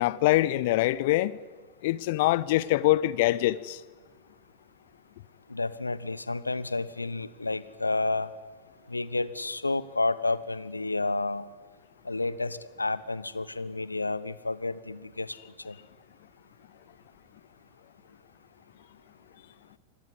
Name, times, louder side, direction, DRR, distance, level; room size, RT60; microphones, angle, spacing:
voice 1, 0.0-1.4 1.8-3.8, left 16 dB, 50° left, 0.9 m, -24 dB
voice 2, 5.5-8.3 8.9-11.5 12.0-15.4 15.6-15.8, left 3 dB, 80° left, 1.1 m, -30 dB
26.5 x 21.0 x 9.7 m
figure-of-eight pair, 90°, 0 cm